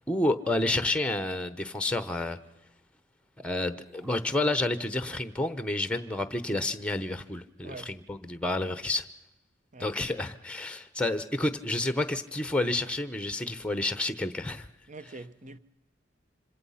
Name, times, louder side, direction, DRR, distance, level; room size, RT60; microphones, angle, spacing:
voice 1, 0.1-2.4 3.4-9.1 9.8-14.7, left 2 dB, 5° left, 0.9 m, -30 dB
sound 1, 3.9-5.4, right 1 dB, 15° right, 5.9 m, -60 dB
voice 2, 7.6-8.0 9.7-10.2 14.9-15.6, right 3 dB, 40° right, 1.0 m, -45 dB
26.0 x 26.0 x 5.7 m
head